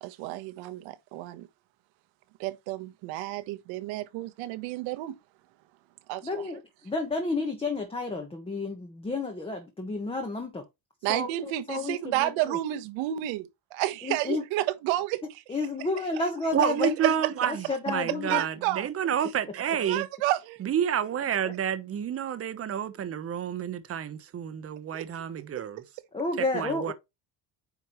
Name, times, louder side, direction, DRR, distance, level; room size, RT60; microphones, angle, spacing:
voice 1, 0.0-1.5 2.4-5.1 6.1-6.5 11.0-15.4 16.8-17.3 18.3-18.9 19.9-20.6 24.9-25.0, right 15 dB, 80° right, 1.4 m, -31 dB
voice 2, 6.2-10.6 11.1-12.6 14.0-14.4 15.5-17.0 17.5-18.4 21.4-21.5 26.1-26.9, left 3 dB, 10° left, 1.3 m, -31 dB
voice 3, 16.5-20.1 20.6-25.8 26.5-26.9, right 9 dB, 30° right, 1.1 m, -29 dB
9.6 x 5.2 x 3.2 m
cardioid pair, 150°, 46 cm